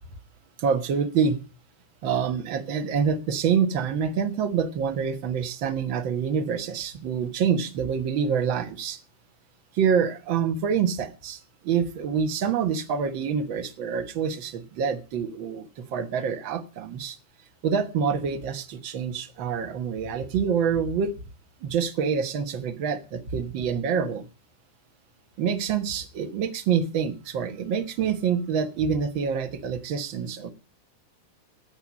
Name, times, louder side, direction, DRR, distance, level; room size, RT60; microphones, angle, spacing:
voice 1, 0.6-1.4 2.0-9.0 9.7-11.4 11.6-17.2 17.6-21.1 21.6-24.2 25.4-30.5, right 7 dB, 70° right, 7 dB, 1.1 m, -26 dB
14.0 x 8.6 x 7.4 m, 0.34 s
omnidirectional pair, 4.1 m